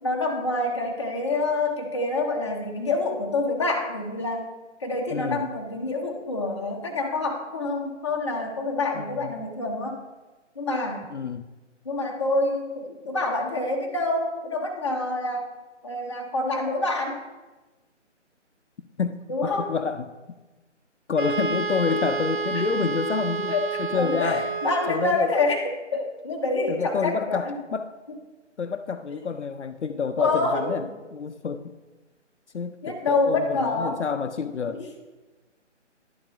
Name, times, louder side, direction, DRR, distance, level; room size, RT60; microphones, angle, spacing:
voice 1, 0.0-4.5 4.8-10.0 10.6-11.1 11.8-15.5 15.8-17.2 19.3-19.7 22.5-22.6 23.5-27.6 29.1-29.2 30.2-30.9 32.8-34.0 34.7-34.9, left 2 dB, 25° left, 0 dB, 0.6 m, -27 dB
voice 2, 5.1-5.4 9.0-9.3 11.1-11.5 19.0-20.1 21.1-23.5 23.8-24.5 24.9-25.3 26.7-27.9 28.6-30.8 31.1-31.7 32.5-34.8, left 6 dB, 70° left, 9 dB, 0.5 m, -28 dB
Wind instrument woodwind instrument, 21.2-25.2, right 5 dB, 45° right, 0.6 m, -29 dB
11.0 x 4.3 x 3.3 m, 1.2 s
figure-of-eight pair, 150°, 37 cm